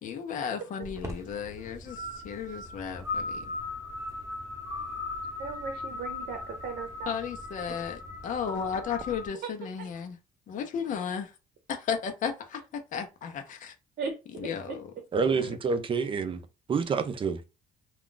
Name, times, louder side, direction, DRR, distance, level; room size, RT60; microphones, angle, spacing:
voice 1, 0.0-3.4 7.1-10.2 10.5-11.3 11.7-13.7 14.4-14.8 15.4-15.5, left 7 dB, 50° left, 0.7 m, -34 dB
sound 1, 0.8-9.3, left 2 dB, 15° right, 0.9 m, -38 dB
voice 2, 5.4-7.2 9.4-9.5 9.8-9.9 14.0-14.8, right 5 dB, 60° right, 0.8 m, -37 dB
voice 3, 15.1-16.4 16.7-17.4, right 5 dB, 30° right, 0.5 m, -27 dB
2.3 x 2.3 x 3.8 m
cardioid pair, 110°, 17 cm